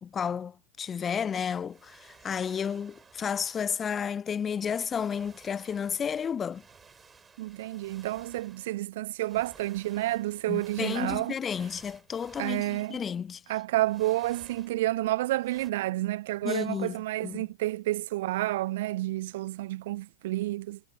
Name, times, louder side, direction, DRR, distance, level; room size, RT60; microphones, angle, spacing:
voice 1, 0.0-6.6 10.5-13.4 16.4-16.9 17.2-17.4, left 7 dB, 20° left, 0.5 m, -32 dB
sound 1, 1.6-3.9 4.8-8.9 9.2-13.2 13.8-15.1 15.4-15.7, right 5 dB, 15° right, 7.7 m, -56 dB
voice 2, 7.4-11.3 12.4-13.0 13.5-20.8, right 16 dB, 55° right, 0.3 m, -30 dB
figure-of-eight pair, 90°, 0 cm